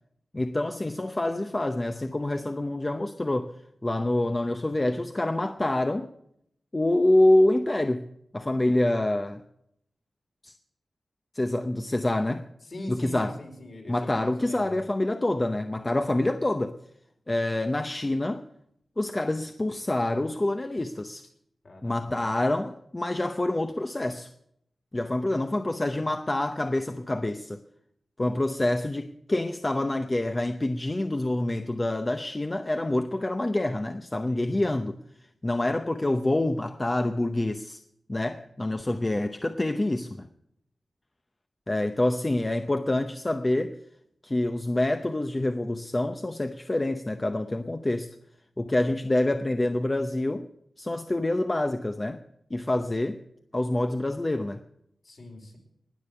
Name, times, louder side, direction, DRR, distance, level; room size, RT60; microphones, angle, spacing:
voice 1, 0.3-3.5 3.8-6.1 6.7-8.1 8.3-9.4 10.4-10.6 11.3-12.5 12.9-13.4 13.9-16.8 17.3-18.5 19.0-21.2 21.8-24.3 24.9-27.6 28.2-35.0 35.4-37.8 38.1-40.3 41.7-43.8 44.2-48.2 48.6-50.4 50.8-52.2 52.5-53.2 53.5-54.6, left 1 dB, 25° left, 0.7 m, -26 dB
voice 2, 12.7-14.7 21.6-22.2 34.1-34.6 55.0-55.6, left 1 dB, 55° left, 4.8 m, -42 dB
20.0 x 6.9 x 8.0 m
wide cardioid pair, 90°, 0 cm